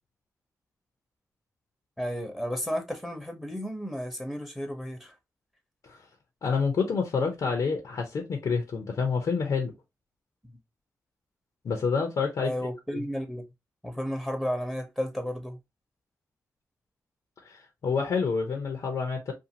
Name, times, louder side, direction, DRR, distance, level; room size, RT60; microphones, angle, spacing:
voice 1, 2.0-5.2 10.4-10.6 12.4-13.5 13.8-15.6, equal, 5° right, 0.8 m, -33 dB
voice 2, 6.4-9.7 11.6-12.5 12.9-13.0 17.4-19.3, left 5 dB, 70° left, 0.6 m, -28 dB
2.6 x 2.4 x 2.7 m
cardioid pair, 70°, 6 cm